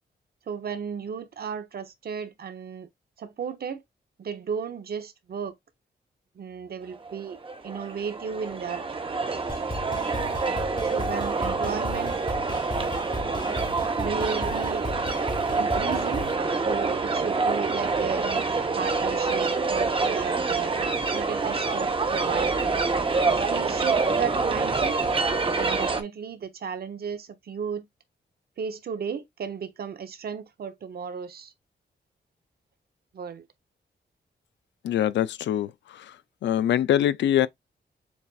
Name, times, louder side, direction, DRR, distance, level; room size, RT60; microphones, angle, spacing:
voice 1, 0.5-2.9 3.2-3.8 4.2-5.5 6.3-7.4 7.6-8.8 10.8-12.2 13.7-14.9 15.5-16.2 16.6-18.4 18.7-20.7 21.1-22.7 23.3-25.0 25.5-27.9 28.6-31.5 33.1-33.5, right 6 dB, 60° right, 0.8 m, -34 dB
sound 1, 6.9-26.0, right 4 dB, 30° right, 0.9 m, -26 dB
sound 2, 9.5-16.3, left 2 dB, 25° left, 1.1 m, -36 dB
voice 2, 34.8-35.7 36.4-37.5, left 11 dB, 85° left, 0.4 m, -23 dB
7.1 x 2.6 x 2.4 m
cardioid pair, 95°, 18 cm